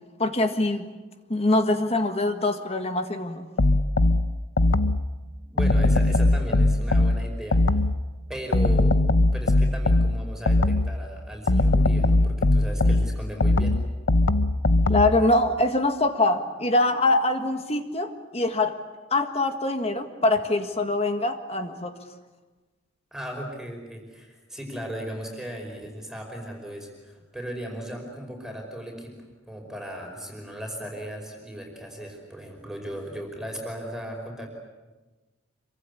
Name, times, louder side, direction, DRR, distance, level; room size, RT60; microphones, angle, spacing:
voice 1, 0.2-0.8 1.3-3.5 14.9-18.8 19.1-21.9, left 2 dB, 30° left, 7 dB, 1.7 m, -24 dB
sound 1, 3.6-5.1 5.6-8.1 8.5-11.0 11.5-15.2, left 2 dB, 75° left, 0.8 m, -20 dB
voice 2, 5.5-7.6 8.3-9.0 9.3-13.8 23.1-29.1 29.5-34.5, right 1 dB, 5° right, 1 dB, 5.2 m, -36 dB
27.0 x 24.0 x 8.5 m, 1.2 s
head